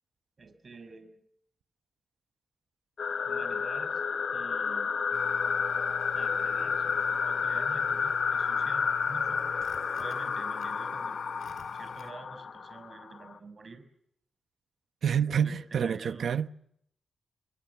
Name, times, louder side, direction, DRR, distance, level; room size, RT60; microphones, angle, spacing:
voice 1, 0.4-1.1 3.3-4.0 4.3-4.9 6.1-9.4 10.0-11.2 11.7-13.8 15.4-16.3, right 4 dB, 40° right, 5.7 m, -48 dB
sound 1, 3.0-13.3, left 6 dB, 55° left, 1.0 m, -30 dB
sound 2, 5.1-12.1, left 7 dB, 80° left, 2.5 m, -47 dB
voice 2, 15.0-16.5, right 8 dB, 65° right, 0.9 m, -28 dB
27.5 x 22.5 x 7.1 m
wide cardioid pair, 120°, 0 cm